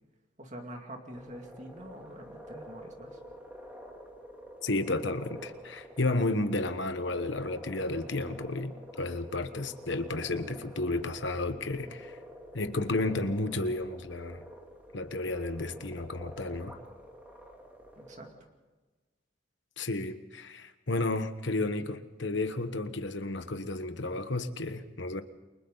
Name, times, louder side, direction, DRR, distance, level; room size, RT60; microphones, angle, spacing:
voice 1, 0.4-3.2 18.0-18.3, right 1 dB, 35° right, 3 dB, 2.5 m, -45 dB
sound 1, 1.1-18.3, equal, 10° right, 2.7 m, -48 dB
voice 2, 4.6-12.2 12.5-14.4 14.9-16.8 19.8-25.2, left 2 dB, 65° left, 10 dB, 1.2 m, -32 dB
29.0 x 24.0 x 4.0 m, 1.2 s
head